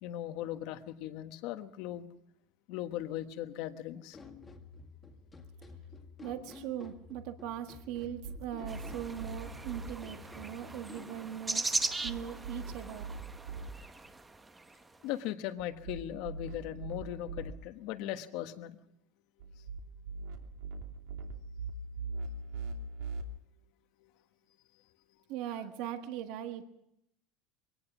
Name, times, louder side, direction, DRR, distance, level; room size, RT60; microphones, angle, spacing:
voice 1, 0.0-2.1 2.7-4.2 15.0-18.8, left 12 dB, 55° left, 9 dB, 1.4 m, -38 dB
sound 1, 4.1-11.2, left 4 dB, 15° left, 2.0 m, -51 dB
voice 2, 6.2-11.7 12.0-13.1 25.3-26.6, right 10 dB, 60° right, 6 dB, 1.6 m, -40 dB
sound 2, 8.0-9.9 11.8-13.7 15.6-17.5 19.4-23.2, right 3 dB, 75° right, 2.9 m, -42 dB
sound 3, 8.7-14.9, right 3 dB, 10° right, 0.9 m, -39 dB
23.5 x 18.5 x 6.1 m, 0.76 s
cardioid pair, 160°, 0 cm